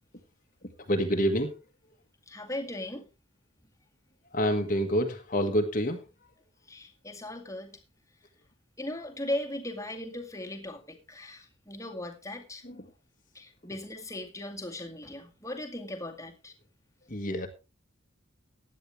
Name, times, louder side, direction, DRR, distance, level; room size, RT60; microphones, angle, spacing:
voice 1, 0.6-1.5 4.3-6.0 12.6-12.9 17.1-17.5, equal, 40° left, 1.6 m, -28 dB
voice 2, 2.3-3.0 6.7-7.8 8.8-12.6 13.3-16.5, left 1 dB, 15° left, 2.1 m, -38 dB
16.0 x 10.0 x 3.4 m
head